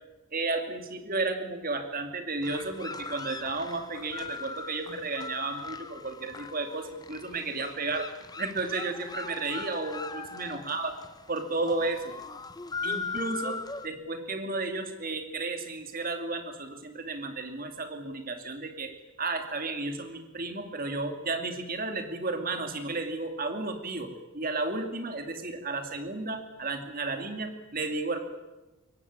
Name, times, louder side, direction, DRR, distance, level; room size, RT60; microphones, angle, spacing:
voice 1, 0.3-8.1 8.4-10.9 11.3-12.1 12.8-28.2, right 3 dB, 40° right, 6 dB, 2.7 m, -33 dB
sound 1, 2.4-13.9, left 4 dB, 20° left, 0.9 m, -39 dB
22.5 x 18.0 x 9.7 m, 1.1 s
head